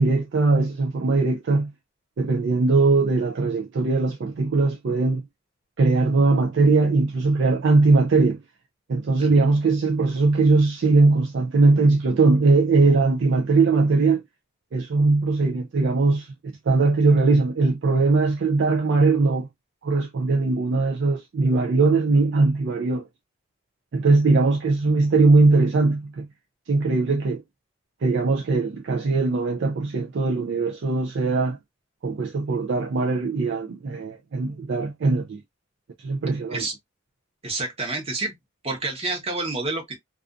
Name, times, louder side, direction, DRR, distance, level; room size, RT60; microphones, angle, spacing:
voice 1, 0.0-1.7 2.2-5.2 5.8-8.4 8.9-14.2 14.7-16.3 16.7-19.5 19.8-23.1 23.9-26.3 26.7-27.4 28.0-31.6 32.0-35.4 36.0-36.7, right 3 dB, 55° right, 0.4 m, -20 dB
voice 2, 9.2-9.5 36.5-36.7 37.4-38.3 38.6-40.0, right 2 dB, 30° right, 0.9 m, -29 dB
2.4 x 2.4 x 2.4 m
head